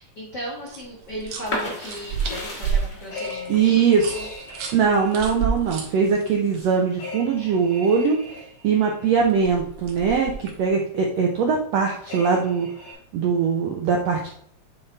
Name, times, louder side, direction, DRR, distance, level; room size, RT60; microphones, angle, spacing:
voice 1, 0.0-4.3, equal, 60° left, -3 dB, 1.1 m, -36 dB
sound 1, 0.7-6.6 9.2-10.7, right 6 dB, 65° right, 2.4 m, -31 dB
sound 2, 1.4-7.1 7.5-8.4, left 1 dB, 40° left, 0.6 m, -35 dB
sound 3, 3.1-5.4 7.0-9.1 12.1-12.9, left 2 dB, 90° left, 5.0 m, -39 dB
voice 2, 3.5-4.4 4.7-8.2 8.6-12.7 13.1-14.3, right 6 dB, 85° right, 0 dB, 1.4 m, -21 dB
9.2 x 4.1 x 3.3 m, 0.64 s
omnidirectional pair, 4.1 m